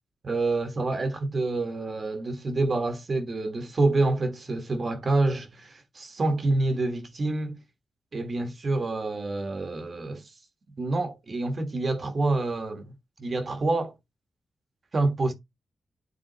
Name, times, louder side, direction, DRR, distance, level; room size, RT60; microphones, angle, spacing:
voice 1, 0.2-7.6 8.1-10.2 10.8-12.9 13.2-13.9 14.9-15.3, right 2 dB, 50° right, 1.5 m, -27 dB
9.6 x 3.6 x 3.1 m
cardioid pair, 65°, 0 cm